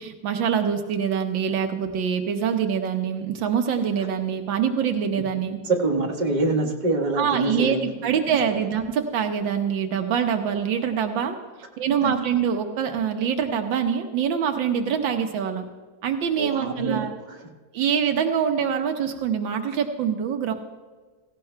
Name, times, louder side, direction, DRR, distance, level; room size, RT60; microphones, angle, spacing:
voice 1, 0.0-5.6 7.2-7.8 8.0-11.4 11.8-15.7 16.0-17.1 17.7-20.5, right 7 dB, 85° right, 5 dB, 1.7 m, -24 dB
voice 2, 5.6-7.9 8.3-8.7 12.0-12.3 16.4-17.5, right 3 dB, 25° right, 0 dB, 1.4 m, -26 dB
17.0 x 16.0 x 2.3 m, 1.4 s
omnidirectional pair, 2.0 m